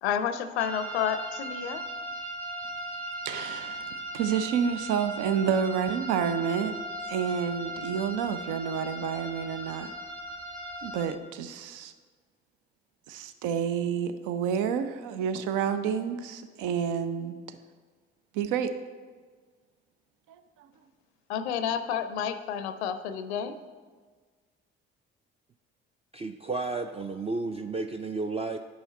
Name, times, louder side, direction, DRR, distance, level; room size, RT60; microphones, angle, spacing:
voice 1, 0.0-1.8 21.3-23.5, left 8 dB, 90° left, 11 dB, 0.5 m, -30 dB
sound 1, 0.6-11.0, right 1 dB, 90° right, 2.3 m, -38 dB
voice 2, 3.2-6.8 7.1-9.9 10.8-11.9 13.1-17.6 18.3-18.7 20.3-20.7, right 7 dB, 70° right, 10 dB, 0.6 m, -29 dB
voice 3, 26.1-28.6, right 3 dB, 20° right, 6 dB, 0.4 m, -32 dB
8.6 x 5.6 x 4.2 m, 1.5 s
hypercardioid pair, 50°, 32 cm